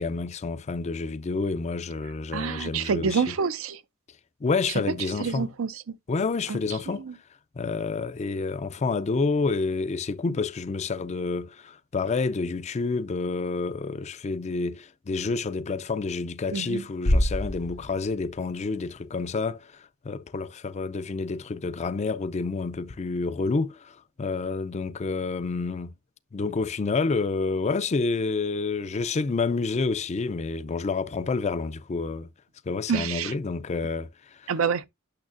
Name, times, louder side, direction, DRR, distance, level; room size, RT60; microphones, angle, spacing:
voice 1, 0.0-3.4 4.4-5.5 6.1-7.1 7.5-25.9 26.3-32.3 32.7-34.5, left 4 dB, 35° left, 0.4 m, -29 dB
voice 2, 2.3-3.8 5.2-6.0 6.5-6.6 6.9-7.1 16.5-16.8 32.9-33.3 34.5-34.9, right 6 dB, 75° right, 0.5 m, -27 dB
Bass drum, 17.0-18.7, left 1 dB, 80° left, 0.9 m, -26 dB
8.7 x 6.3 x 2.5 m
head